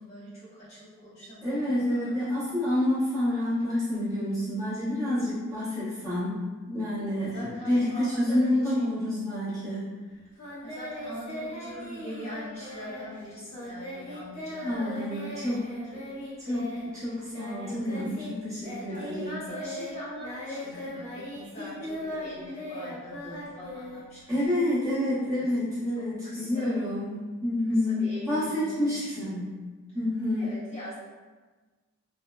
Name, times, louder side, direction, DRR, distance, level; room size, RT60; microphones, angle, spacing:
voice 1, 0.0-2.1 7.2-9.0 10.6-16.0 18.9-24.5 25.0-25.5 25.9-26.7 27.9-29.3 30.3-30.9, equal, 30° left, -10 dB, 0.7 m, -42 dB
voice 2, 1.4-6.4 6.7-9.9 14.6-15.6 16.4-19.4 24.3-29.6 29.9-30.5, left 1 dB, 15° right, -12 dB, 0.8 m, -28 dB
Singing, 10.4-18.3 18.6-24.5, left 1 dB, 85° left, 0.9 m, -39 dB
3.3 x 2.0 x 2.2 m, 1.3 s
head